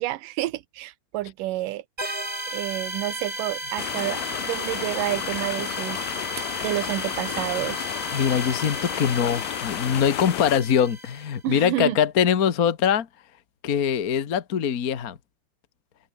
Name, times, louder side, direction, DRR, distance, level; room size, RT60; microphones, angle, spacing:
voice 1, 0.0-1.8 2.5-7.9 11.4-12.0, right 16 dB, 80° right, 2.5 m, -29 dB
sound 1, 2.0-11.4, right 1 dB, 10° right, 4.9 m, -34 dB
sound 2, 3.8-10.6, left 14 dB, 70° left, 1.8 m, -32 dB
voice 2, 8.1-13.1 13.6-15.2, left 8 dB, 50° left, 1.0 m, -23 dB
omnidirectional pair, 3.8 m